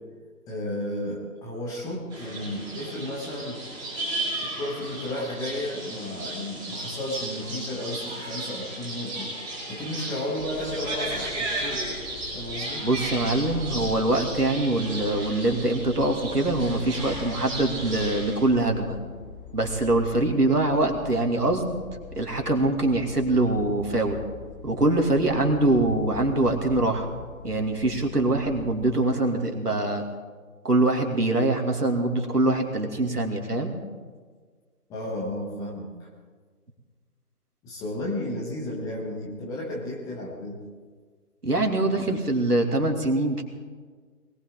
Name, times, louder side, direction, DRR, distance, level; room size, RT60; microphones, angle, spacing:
voice 1, 0.5-3.6 4.4-11.8 12.3-12.9 34.9-36.1 37.6-40.6, left 1 dB, 5° left, -3 dB, 1.3 m, -33 dB
sound 1, 2.1-18.5, right 2 dB, 10° right, 4.0 m, -35 dB
sound 2, 10.4-28.9, left 5 dB, 35° left, 2.2 m, -43 dB
voice 2, 12.8-19.0 19.5-21.8 22.2-24.2 24.6-27.1 27.4-30.0 30.6-33.7 41.4-43.4, right 2 dB, 90° right, 3 dB, 2.6 m, -23 dB
21.0 x 18.5 x 3.7 m, 1.5 s
figure-of-eight pair, 145°, 45 cm